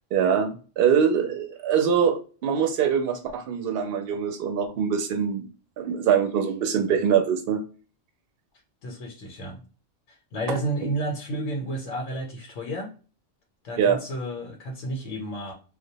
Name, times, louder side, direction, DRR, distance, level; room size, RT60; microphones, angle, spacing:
voice 1, 0.1-5.5 5.8-7.6 13.8-14.0, right 7 dB, 60° right, 5 dB, 0.7 m, -23 dB
voice 2, 8.8-9.6 10.1-12.9 13.6-15.5, right 1 dB, 80° left, 0 dB, 0.9 m, -31 dB
2.1 x 2.1 x 2.7 m, 0.35 s
omnidirectional pair, 1.3 m